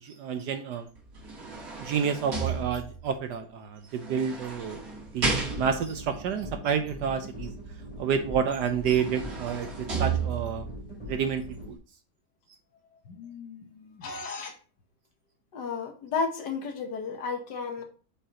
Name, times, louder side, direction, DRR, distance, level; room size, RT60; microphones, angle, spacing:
voice 1, 0.0-0.9 1.8-4.8 5.1-7.5 8.0-10.6 11.1-11.8, right 7 dB, 70° right, 8 dB, 1.1 m, -29 dB
sound 1, 1.0-3.2 4.0-6.0 8.3-8.4 8.7-10.7 11.3-11.4, right 5 dB, 45° right, 2.4 m, -33 dB
sound 2, 5.4-11.7, equal, 5° left, 4.1 m, -42 dB
voice 2, 13.1-14.5 15.5-17.8, left 5 dB, 60° left, 5 dB, 1.6 m, -34 dB
8.3 x 5.6 x 2.9 m, 0.38 s
omnidirectional pair, 2.2 m